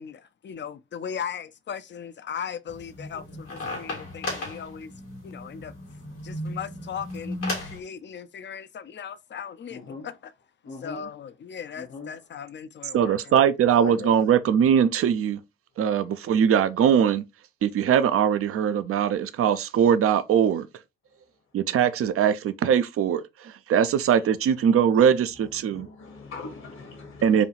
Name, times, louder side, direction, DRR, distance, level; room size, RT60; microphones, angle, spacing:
voice 1, 0.0-4.9 5.2-5.7 6.2-10.3 10.8-13.5 13.8-13.9, left 8 dB, 40° left, 0.5 m, -38 dB
sound 1, 2.7-7.8, left 2 dB, 85° left, 2.1 m, -35 dB
voice 2, 9.7-10.1 10.6-11.0 11.7-12.1 13.7-14.1 25.5-27.5, left 4 dB, 70° left, 1.6 m, -41 dB
voice 3, 12.9-15.4 15.8-17.2 17.6-20.7 21.5-25.9 27.2-27.5, right 8 dB, 50° right, 0.5 m, -21 dB
4.9 x 2.3 x 3.1 m
hypercardioid pair, 40°, 29 cm